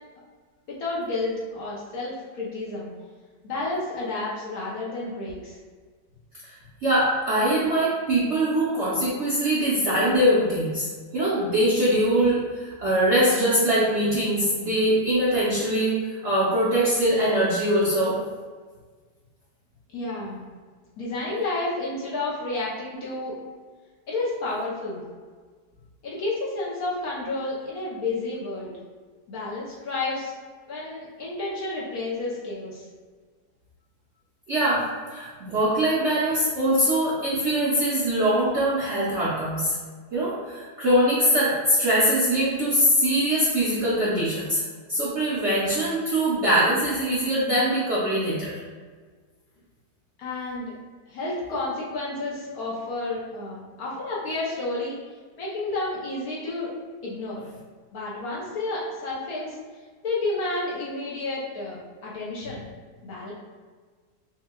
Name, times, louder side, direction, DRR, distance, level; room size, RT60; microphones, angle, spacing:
voice 1, 0.7-2.9 3.4-5.6 19.9-20.4 21.0-23.3 24.1-25.0 26.0-28.7 29.3-30.3 30.7-32.8 50.2-50.7 51.1-55.0 55.4-56.7 57.0-57.5 57.9-59.6 60.0-62.6 63.0-63.3, left 2 dB, 65° left, -6 dB, 1.0 m, -31 dB
voice 2, 6.8-10.9 11.1-18.2 34.5-34.8 35.1-39.8 40.1-44.6 44.9-48.5, right 1 dB, 60° right, -9 dB, 0.8 m, -22 dB
5.4 x 2.2 x 2.2 m, 1.5 s
omnidirectional pair, 2.0 m